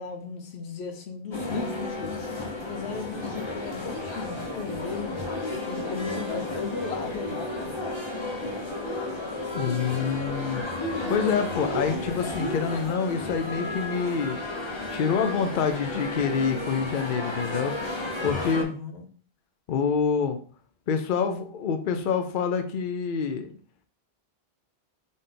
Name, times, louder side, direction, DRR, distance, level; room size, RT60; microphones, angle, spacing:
voice 1, 0.0-2.2 2.6-5.2 5.7-7.7 8.4-8.5 18.4-19.0, left 5 dB, 80° left, 1.0 m, -36 dB
sound 1, 1.3-18.6, left 2 dB, 25° left, 1.0 m, -32 dB
voice 2, 9.5-10.7 11.1-14.4 14.9-17.7 18.2-18.7 19.7-20.4 20.9-23.5, left 6 dB, 60° left, 0.7 m, -26 dB
4.2 x 3.3 x 3.8 m
omnidirectional pair, 1.1 m